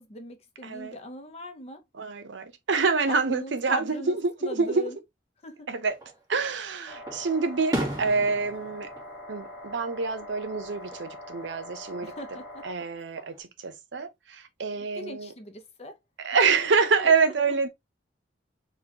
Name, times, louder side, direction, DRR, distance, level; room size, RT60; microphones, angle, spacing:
voice 1, 0.0-1.8 3.1-5.0 5.4-5.7 12.0-12.7 14.7-16.0 16.5-16.6 17.0-17.1 17.5-17.6, left 1 dB, 35° left, 0.6 m, -39 dB
voice 2, 0.6-0.9 2.0-4.8 5.7-5.9 6.3-8.9 9.3-12.1 12.6-15.3 16.2-17.7, right 4 dB, 80° right, 0.7 m, -26 dB
Fireworks, 5.9-6.6 7.1-10.2 10.5-11.1 12.6-13.4, right 1 dB, 20° right, 1.3 m, -36 dB
sound 1, 6.9-12.7, left 1 dB, 5° right, 1.5 m, -43 dB
4.0 x 2.3 x 2.8 m
head